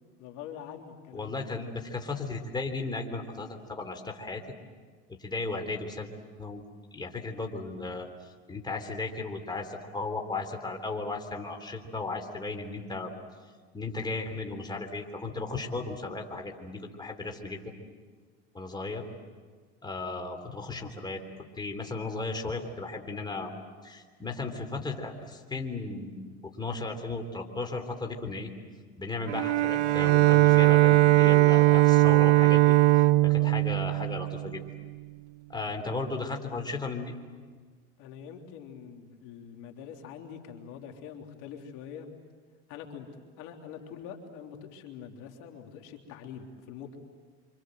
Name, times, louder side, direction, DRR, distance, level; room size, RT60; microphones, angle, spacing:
voice 1, 0.0-1.5 33.3-33.6 38.0-42.1 42.7-43.1 43.4-47.0, left 8 dB, 60° left, 2 dB, 3.3 m, -44 dB
voice 2, 1.1-4.4 5.1-6.1 6.4-6.6 6.9-8.1 8.5-13.1 13.7-17.7 18.5-19.0 19.8-21.2 21.6-23.5 23.8-28.5 29.0-32.6 33.2-34.6 35.5-37.1, left 3 dB, 15° left, 3 dB, 3.5 m, -35 dB
Bowed string instrument, 29.3-34.8, right 18 dB, 90° right, 0.8 m, -20 dB
27.5 x 26.0 x 7.9 m, 1.5 s
supercardioid pair, 105°, 33 cm